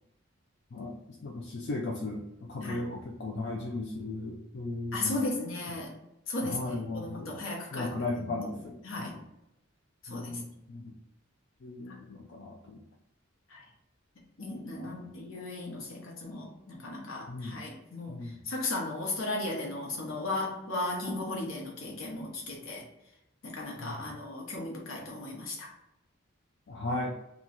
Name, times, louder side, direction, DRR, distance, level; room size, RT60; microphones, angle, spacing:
voice 1, 0.7-5.2 6.4-7.4 7.7-9.2 10.1-11.0 11.6-12.8 14.8-15.1 17.3-17.6 18.1-18.4 23.8-24.1 26.7-27.2, left 2 dB, 55° left, -1 dB, 0.4 m, -37 dB
voice 2, 4.9-5.9 6.3-7.9 8.2-8.6 8.8-9.1 10.0-10.3 11.9-12.0 13.5-13.6 14.4-22.8 23.4-25.7, left 2 dB, 75° left, -1 dB, 1.0 m, -36 dB
3.0 x 2.3 x 3.9 m, 0.87 s
head